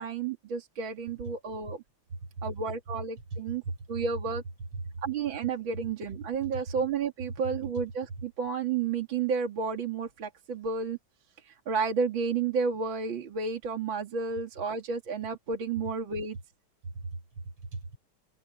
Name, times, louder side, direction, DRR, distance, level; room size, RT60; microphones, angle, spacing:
voice 1, 0.0-1.8 2.4-3.6 3.9-4.4 5.0-11.0 11.4-16.4, right 5 dB, 70° right, 2.9 m, -31 dB
voice 2, 2.1-2.5 3.3-4.1 4.7-5.0 6.4-6.6 16.8-18.0, right 3 dB, 90° right, 5.8 m, -38 dB
omnidirectional pair, 2.3 m